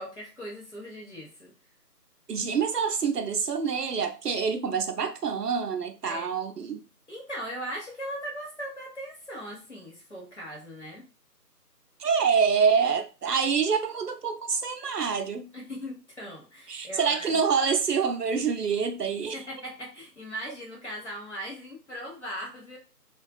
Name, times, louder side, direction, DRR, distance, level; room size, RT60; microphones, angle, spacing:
voice 1, 0.0-1.5 6.0-6.3 7.1-11.0 15.5-17.4 19.2-22.8, equal, 45° left, 1.0 m, -39 dB
voice 2, 2.3-6.8 12.0-15.5 16.7-19.4, right 6 dB, 70° right, 0.6 m, -26 dB
2.5 x 2.3 x 2.3 m
figure-of-eight pair, 175°, 49 cm